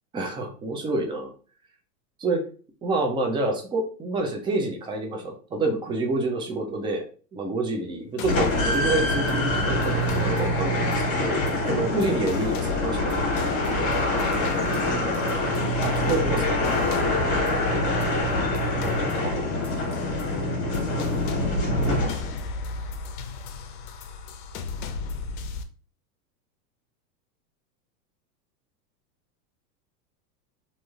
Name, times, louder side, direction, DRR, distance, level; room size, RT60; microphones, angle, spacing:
voice 1, 0.1-1.3 2.2-2.4 2.8-7.0 7.3-13.1 15.8-16.6 18.7-19.5 21.9-22.0, right 2 dB, 10° right, 2 dB, 0.5 m, -28 dB
sound 1, 8.2-25.6, left 4 dB, 65° left, 0.6 m, -34 dB
sound 2, 8.3-22.5, left 1 dB, 30° left, 1.4 m, -25 dB
3.0 x 2.7 x 2.4 m, 0.39 s
hypercardioid pair, 110°, 47 cm